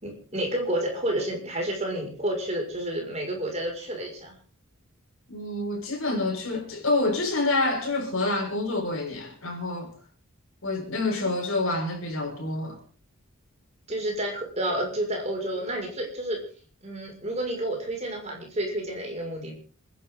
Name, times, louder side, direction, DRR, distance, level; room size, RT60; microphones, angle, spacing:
voice 1, 0.0-4.3 11.1-11.3 13.9-16.4 16.8-19.5, right 1 dB, 30° right, 6.2 m, -30 dB
voice 2, 5.3-9.9 10.6-12.8, left 2 dB, 70° left, 5.9 m, -27 dB
27.5 x 11.0 x 4.0 m
head